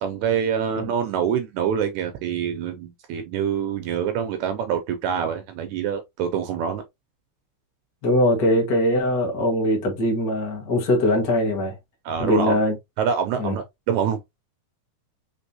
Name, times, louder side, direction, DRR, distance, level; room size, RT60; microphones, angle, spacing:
voice 1, 0.0-6.8 12.1-12.6 13.0-14.2, right 8 dB, 80° right, 1.8 m, -25 dB
voice 2, 8.0-11.7 12.2-12.8 13.4-13.6, left 1 dB, 40° left, 1.3 m, -21 dB
5.3 x 3.3 x 2.8 m
omnidirectional pair, 3.7 m